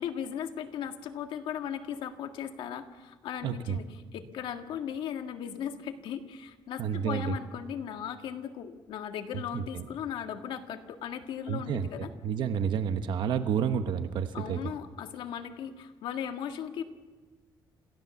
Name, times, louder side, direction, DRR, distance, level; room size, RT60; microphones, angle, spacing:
voice 1, 0.0-12.1 14.3-16.8, left 8 dB, 75° left, 6 dB, 1.8 m, -37 dB
voice 2, 3.4-3.8 6.8-7.3 9.5-9.8 11.5-11.9 12.2-14.6, right 7 dB, 65° right, 9 dB, 1.1 m, -30 dB
28.0 x 16.0 x 7.1 m, 1.4 s
cardioid pair, 180°, 9 cm